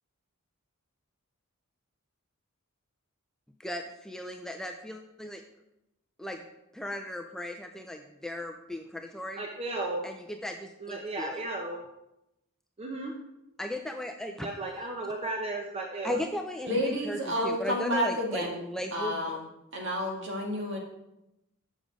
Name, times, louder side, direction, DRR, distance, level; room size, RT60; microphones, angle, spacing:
voice 1, 3.6-5.4 6.2-6.4 6.7-9.4 10.0-11.4 13.6-14.5 16.0-19.2, left 1 dB, ahead, 4 dB, 0.4 m, -37 dB
voice 2, 9.4-10.0 10.8-11.8 12.8-13.1 14.4-16.2, right 2 dB, 25° right, 0 dB, 0.7 m, -34 dB
voice 3, 16.6-18.6 18.9-19.4 19.7-20.8, equal, 55° right, -1 dB, 1.9 m, -30 dB
7.3 x 6.1 x 5.1 m, 0.88 s
head